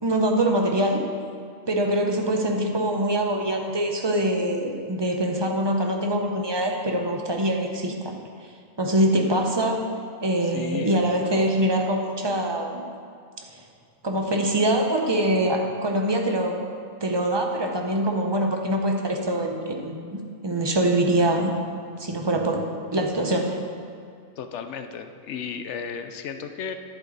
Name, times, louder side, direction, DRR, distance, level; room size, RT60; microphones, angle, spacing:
voice 1, 0.0-1.0 1.7-8.2 8.8-9.8 10.2-12.8 14.0-16.6 17.0-21.5 22.0-22.6 22.9-23.6, right 1 dB, 25° right, 2 dB, 0.7 m, -24 dB
voice 2, 10.4-10.9 24.4-26.7, left 6 dB, 70° left, 8 dB, 0.9 m, -34 dB
11.0 x 8.1 x 3.9 m, 2.4 s
omnidirectional pair, 1.3 m